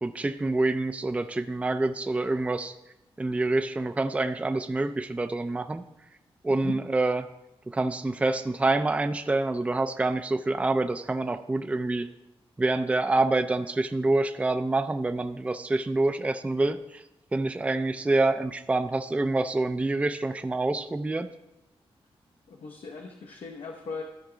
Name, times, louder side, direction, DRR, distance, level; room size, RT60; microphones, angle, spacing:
voice 1, 0.0-2.7 3.2-5.8 6.4-7.3 7.7-12.1 12.6-17.0 17.3-21.3, right 2 dB, 15° right, 9 dB, 0.4 m, -26 dB
voice 2, 22.5-24.0, left 4 dB, 75° left, 1 dB, 0.8 m, -38 dB
13.0 x 4.6 x 3.8 m, 0.91 s
wide cardioid pair, 100°, 10 cm